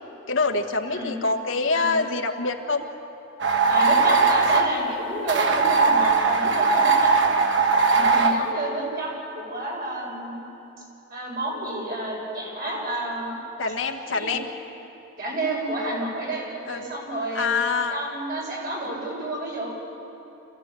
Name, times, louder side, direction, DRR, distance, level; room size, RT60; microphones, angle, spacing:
voice 1, 0.3-2.8 13.6-14.5 16.7-16.8 17.3-18.0, left 4 dB, 80° left, 4 dB, 1.5 m, -25 dB
sound 1, 3.4-4.7 5.3-8.4, right 4 dB, 65° right, 1.3 m, -19 dB
voice 2, 3.7-7.2 7.9-10.4 11.1-13.4 14.1-14.4 15.2-17.6 17.9-19.7, right 1 dB, 50° right, -3 dB, 6.5 m, -30 dB
26.5 x 16.5 x 8.4 m, 2.9 s
head